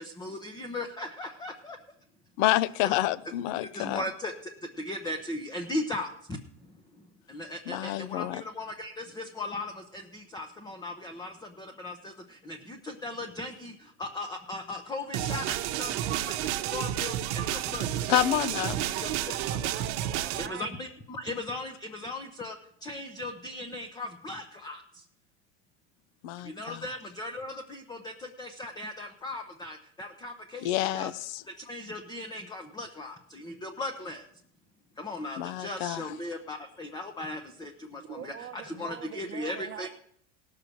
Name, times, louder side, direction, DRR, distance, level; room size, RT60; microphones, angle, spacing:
voice 1, 0.0-1.8 2.8-3.0 3.6-18.1 18.6-19.6 20.4-25.1 26.4-31.1 31.4-34.3 35.0-39.9, left 2 dB, 10° left, 5 dB, 0.8 m, -38 dB
voice 2, 2.4-4.0 7.7-8.4 18.1-18.8 26.2-26.8 30.6-31.4 35.4-36.1, left 14 dB, 55° left, 19 dB, 0.6 m, -28 dB
sound 1, 15.1-20.5, right 12 dB, 70° right, 1.0 m, -31 dB
voice 3, 19.4-20.7 37.9-39.9, right 10 dB, 30° right, 7 dB, 1.1 m, -43 dB
17.5 x 6.7 x 6.1 m, 0.69 s
supercardioid pair, 130°, 35 cm